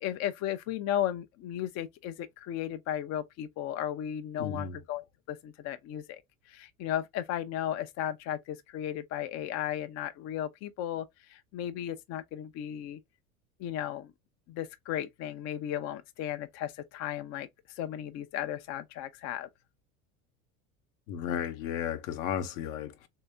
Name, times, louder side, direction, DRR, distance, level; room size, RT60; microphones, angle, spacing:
voice 1, 0.0-6.2 6.5-13.0 13.6-14.1 14.5-19.5, left 11 dB, 40° left, 0.5 m, -35 dB
voice 2, 4.4-4.8 21.1-23.1, left 9 dB, 60° left, 0.9 m, -34 dB
3.4 x 2.7 x 3.3 m
hypercardioid pair, 85°, 44 cm